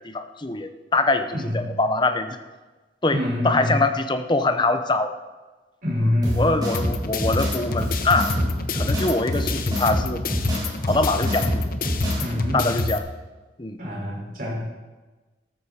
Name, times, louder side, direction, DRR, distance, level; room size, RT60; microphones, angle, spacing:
voice 1, 0.0-2.4 3.0-5.1 6.0-8.3 8.7-10.2 10.8-11.7 12.3-13.1 13.6-13.8, left 2 dB, 25° left, 9 dB, 0.7 m, -24 dB
voice 2, 1.3-1.7 3.1-3.7 5.8-6.5 12.2-12.8 13.8-14.5, left 1 dB, 50° right, -4 dB, 5.2 m, -25 dB
sound 1, 6.2-12.2, equal, 20° right, 3.9 m, -27 dB
sound 2, 6.7-13.0, left 3 dB, 50° left, 0.9 m, -28 dB
13.5 x 13.0 x 4.3 m, 1.2 s
head